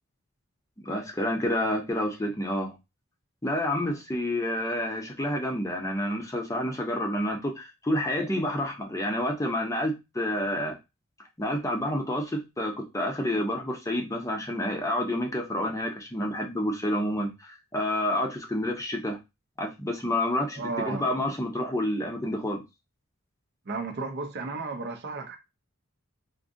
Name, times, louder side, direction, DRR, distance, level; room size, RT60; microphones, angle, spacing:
voice 1, 0.8-2.7 3.4-10.8 11.4-19.2 19.6-22.6, left 1 dB, 15° left, 0.6 m, -29 dB
voice 2, 20.6-21.0 23.7-25.4, right 3 dB, 50° right, 0.6 m, -33 dB
3.6 x 2.6 x 2.5 m
head